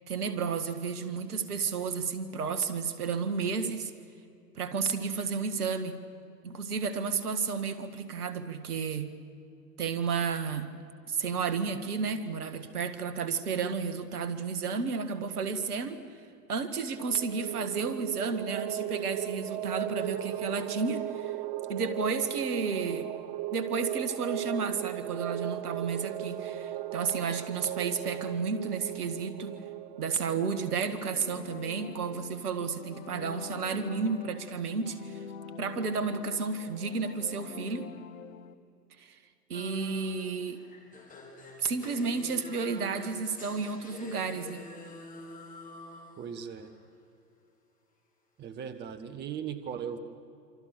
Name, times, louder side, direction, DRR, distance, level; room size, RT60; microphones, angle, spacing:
voice 1, 0.1-3.9 4.6-6.0 6.4-9.2 9.8-10.7 11.1-16.0 16.5-21.3 21.7-23.1 23.5-29.6 30.0-35.2 35.6-37.9 39.0-39.2 39.5-40.6 41.6-44.6, right 5 dB, 65° right, 11 dB, 2.0 m, -32 dB
sound 1, 16.9-31.2, right 12 dB, 45° right, 1.0 m, -37 dB
sound 2, 30.6-38.5, left 6 dB, 55° left, 1.4 m, -45 dB
sound 3, 39.5-46.8, left 2 dB, 15° left, 3.8 m, -47 dB
voice 2, 46.2-46.7 48.4-50.0, right 8 dB, 20° right, 9 dB, 1.3 m, -38 dB
27.0 x 26.5 x 6.8 m, 2.6 s
figure-of-eight pair, 105°, 48 cm